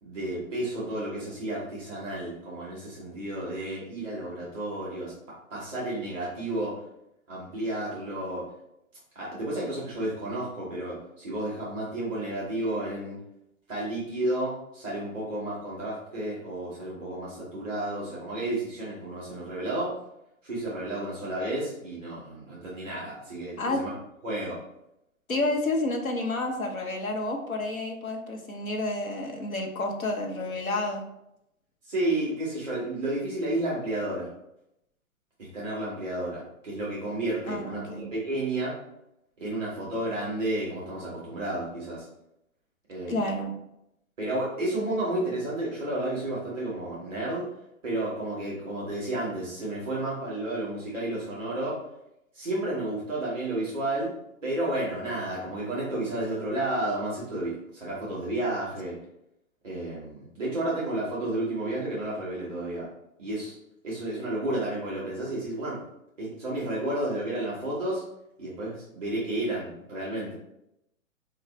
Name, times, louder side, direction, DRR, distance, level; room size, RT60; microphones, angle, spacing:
voice 1, 0.0-5.1 5.5-6.8 7.3-8.5 9.1-13.2 13.7-19.9 20.4-23.9 24.2-24.6 31.8-34.3 35.4-38.8 39.4-42.0 42.9-43.3 44.2-47.5 47.8-51.8 52.3-54.1 54.4-59.0 59.6-62.9 63.2-63.6 63.8-65.8 66.2-68.0 68.4-70.3, right 1 dB, ahead, -7 dB, 0.4 m, -31 dB
voice 2, 25.3-31.0 37.5-38.1 43.1-43.5, left 2 dB, 80° left, 2 dB, 0.9 m, -30 dB
4.5 x 2.4 x 3.1 m, 0.82 s
figure-of-eight pair, 120°, 41 cm